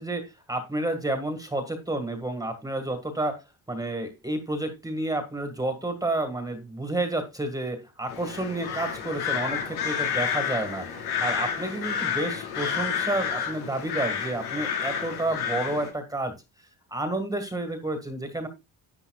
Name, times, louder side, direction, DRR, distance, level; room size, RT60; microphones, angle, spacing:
voice 1, 0.0-10.9 11.2-16.4 16.9-18.5, right 2 dB, 10° right, 7 dB, 1.7 m, -30 dB
sound 1, 8.1-15.9, left 7 dB, 90° left, 4.7 m, -30 dB
11.0 x 9.9 x 2.3 m, 0.24 s
cardioid pair, 140°, 38 cm